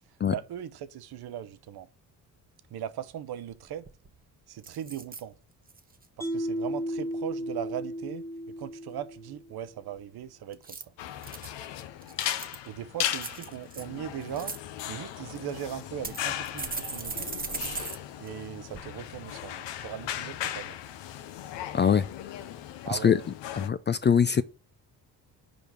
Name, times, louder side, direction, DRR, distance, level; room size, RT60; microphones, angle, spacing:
voice 1, 0.3-1.9 2.7-3.9 4.5-5.3 6.2-8.2 8.6-10.9 12.7-14.5 14.9-17.3 18.2-20.8 22.8-23.3 23.6-23.7, right 10 dB, 55° right, 0.9 m, -39 dB
sound 1, 3.9-4.2 4.6-5.2 5.7-6.1 10.5-11.5 12.0-12.7 13.2-13.8 14.2-14.6 15.4-15.5 16.0-18.0 18.3-18.4 18.7-18.8, right 4 dB, 20° right, 1.0 m, -38 dB
Mallet percussion, 6.2-9.5, equal, 5° left, 0.8 m, -34 dB
sound 2, 11.0-23.7, left 11 dB, 70° left, 0.8 m, -37 dB
voice 2, 21.7-22.1 22.9-23.2 23.6-24.4, left 7 dB, 25° left, 0.4 m, -22 dB
5.2 x 5.1 x 6.0 m
hypercardioid pair, 50°, 45 cm